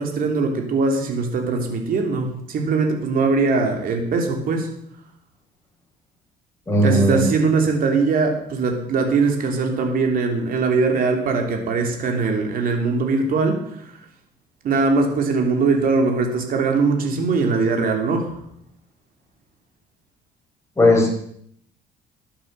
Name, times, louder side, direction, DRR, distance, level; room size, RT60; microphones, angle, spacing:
voice 1, 0.0-4.7 6.8-14.1 14.6-18.4, right 4 dB, 60° right, 3 dB, 3.1 m, -21 dB
voice 2, 6.7-7.2 20.8-21.1, left 1 dB, 15° left, 0 dB, 4.9 m, -16 dB
13.0 x 10.0 x 6.7 m, 0.69 s
cardioid pair, 110°, 17 cm